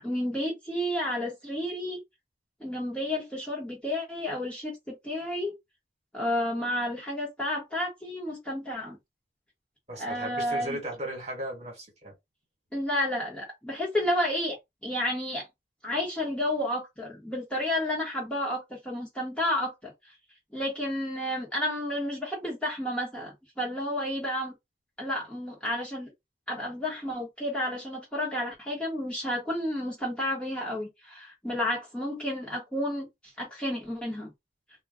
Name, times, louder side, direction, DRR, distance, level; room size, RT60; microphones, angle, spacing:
voice 1, 0.0-2.0 2.6-5.5 6.1-9.0 10.0-10.8 12.7-14.6 14.8-15.5 15.8-19.9 20.5-24.5 25.0-26.1 26.5-33.1 33.4-34.3, left 1 dB, 5° left, 0.9 m, -31 dB
voice 2, 9.9-12.1, right 1 dB, 35° right, 1.3 m, -36 dB
2.3 x 2.2 x 3.5 m
head